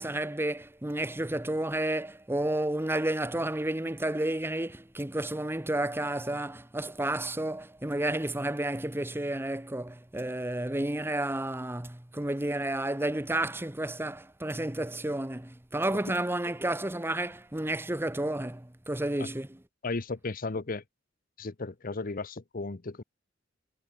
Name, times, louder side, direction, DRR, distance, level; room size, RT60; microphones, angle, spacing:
voice 1, 0.0-19.6, right 1 dB, 10° right, 1.0 m, -31 dB
voice 2, 19.8-20.8 21.4-23.0, left 3 dB, 45° left, 0.8 m, -35 dB
head